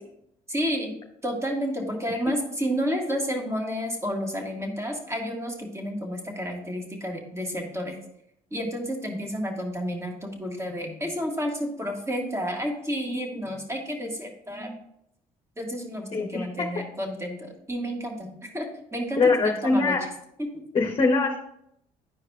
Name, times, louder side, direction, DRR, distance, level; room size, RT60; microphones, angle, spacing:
voice 1, 0.5-0.9 1.2-8.0 8.5-14.8 15.6-20.1 20.4-20.5, equal, 15° right, 1 dB, 1.7 m, -31 dB
voice 2, 16.1-16.4 19.2-20.0 20.7-21.4, left 3 dB, 35° left, 1 dB, 0.8 m, -22 dB
11.5 x 4.7 x 2.4 m, 0.76 s
supercardioid pair, 75°, 16 cm